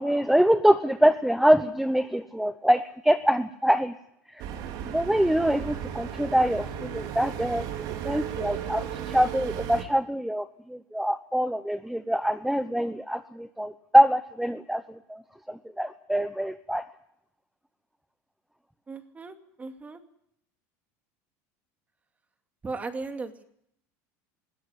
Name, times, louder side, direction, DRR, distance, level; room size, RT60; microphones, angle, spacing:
voice 1, 0.0-3.9 4.3-4.4 4.9-7.7 8.0-15.2 15.5-16.8, equal, 5° right, 11 dB, 0.9 m, -24 dB
sound 1, 4.4-9.8, right 9 dB, 60° right, 3.1 m, -35 dB
voice 2, 18.9-20.0 22.6-23.5, right 3 dB, 20° right, 7 dB, 2.4 m, -37 dB
21.0 x 16.5 x 9.8 m, 0.74 s
supercardioid pair, 120°, 8 cm